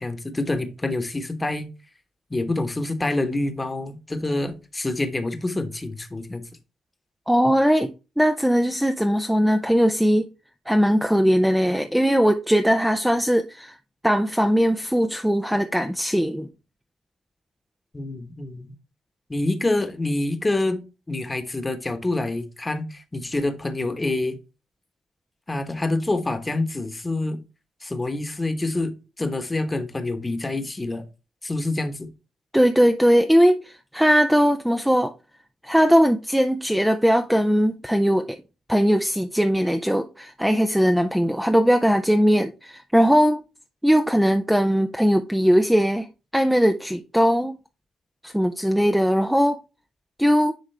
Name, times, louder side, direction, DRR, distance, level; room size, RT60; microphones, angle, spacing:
voice 1, 0.0-1.7 2.3-6.4 17.9-18.8 19.3-24.4 25.5-27.4 27.8-31.0 31.4-32.1, left 2 dB, 20° left, 1.1 m, -27 dB
voice 2, 7.3-7.9 8.2-10.3 10.7-13.8 14.0-16.5 32.5-35.1 35.6-38.4 38.7-43.4 43.8-46.1 46.3-47.6 48.2-49.6 50.2-50.5, equal, ahead, 0.5 m, -20 dB
9.9 x 3.6 x 3.3 m
cardioid pair, 90°, 0 cm